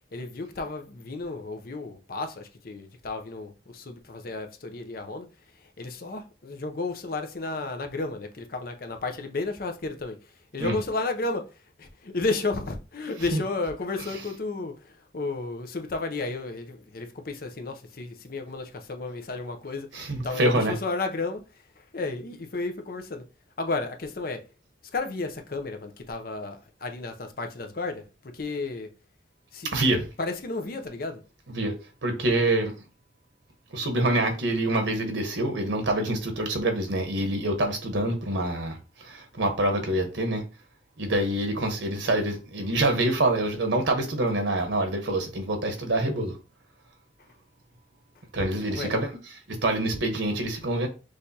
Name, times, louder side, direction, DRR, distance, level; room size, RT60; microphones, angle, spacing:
voice 1, 0.1-5.3 5.8-10.2 10.5-11.5 11.8-14.7 15.1-19.9 20.2-21.4 21.9-23.2 23.6-24.4 24.9-28.0 28.3-28.9 29.5-29.7 30.2-31.2 48.7-49.0, left 3 dB, 50° left, 0.6 m, -32 dB
voice 2, 19.9-20.8 29.7-30.1 31.5-32.7 33.7-40.4 41.0-46.3 48.3-49.1 49.5-50.9, right 1 dB, 90° right, 1.1 m, -26 dB
6.4 x 2.5 x 2.8 m
head